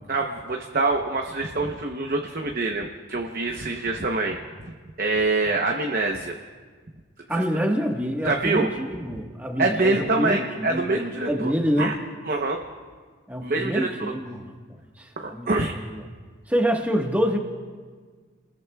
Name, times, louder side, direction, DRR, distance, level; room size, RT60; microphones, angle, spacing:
voice 1, 0.1-4.4 5.0-6.4 8.2-8.7 9.6-11.5 11.8-11.9 12.2-12.6 13.4-13.9 15.2-15.7, right 3 dB, 45° right, 2 dB, 0.9 m, -25 dB
voice 2, 7.3-11.0 11.3-11.9 13.3-16.0 16.5-17.4, equal, 10° right, 1 dB, 1.4 m, -26 dB
29.5 x 20.5 x 2.3 m, 1.6 s
head